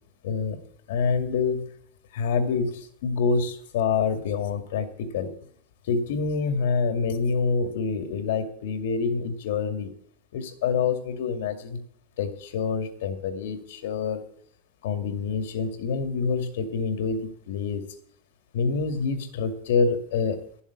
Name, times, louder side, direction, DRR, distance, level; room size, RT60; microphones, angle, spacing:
voice 1, 0.2-0.6 0.9-1.7 2.1-5.3 5.8-9.9 10.3-11.8 12.2-14.2 14.8-17.9 18.5-20.4, left 5 dB, 80° left, 8 dB, 2.2 m, -26 dB
12.0 x 7.2 x 8.5 m, 0.64 s
supercardioid pair, 175°, 0 cm